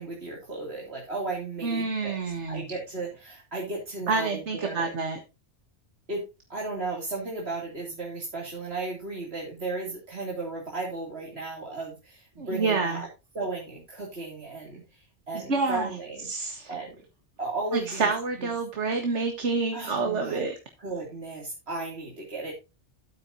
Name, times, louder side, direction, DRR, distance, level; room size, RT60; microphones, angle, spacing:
voice 1, 0.0-4.9 6.1-6.2 6.5-13.1 13.3-16.3 16.7-17.0 17.4-18.1 18.4-18.5 19.7-20.5 20.8-22.5, right 3 dB, 65° right, -2 dB, 3.0 m, -35 dB
voice 2, 1.6-2.7 4.1-5.2 12.4-13.0 15.3-15.9 16.3-16.7 17.7-20.5, right 4 dB, 90° right, 5 dB, 1.8 m, -28 dB
12.5 x 8.8 x 2.7 m, 0.28 s
omnidirectional pair, 1.2 m